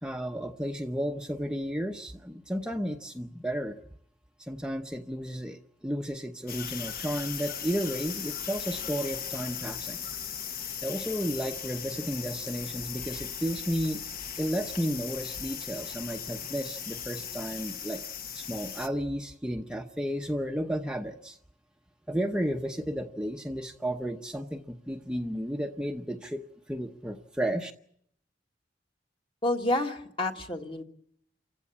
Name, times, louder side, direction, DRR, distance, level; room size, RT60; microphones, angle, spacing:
voice 1, 0.0-3.8 4.4-10.0 10.8-14.0 14.4-18.0 18.3-21.4 22.1-26.4 26.7-27.7, equal, 5° right, 3 dB, 0.8 m, -33 dB
sound 1, 6.5-18.9, left 8 dB, 55° left, 1.1 m, -38 dB
voice 2, 29.4-30.8, left 1 dB, 30° left, 3 dB, 1.9 m, -29 dB
28.5 x 16.0 x 8.5 m, 0.71 s
head